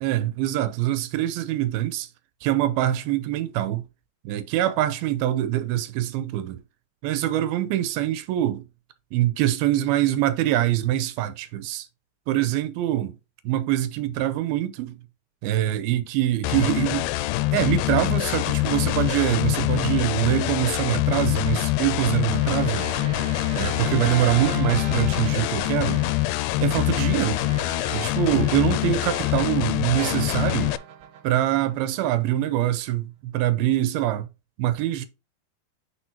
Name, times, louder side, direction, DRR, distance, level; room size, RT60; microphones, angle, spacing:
voice 1, 0.0-2.1 2.4-3.8 4.3-6.6 7.0-8.6 9.1-11.9 12.3-13.2 13.4-15.0 15.4-17.1 17.5-22.9 23.5-26.1 26.6-27.4 27.9-30.7 31.2-34.3 34.6-35.1, right 13 dB, 85° right, 2.6 m, -24 dB
sound 1, 16.4-30.8, left 18 dB, 85° left, 2.3 m, -25 dB
sound 2, 22.2-29.6 30.0-32.4, right 8 dB, 70° right, 2.4 m, -39 dB
8.9 x 4.6 x 2.7 m
omnidirectional pair, 4.3 m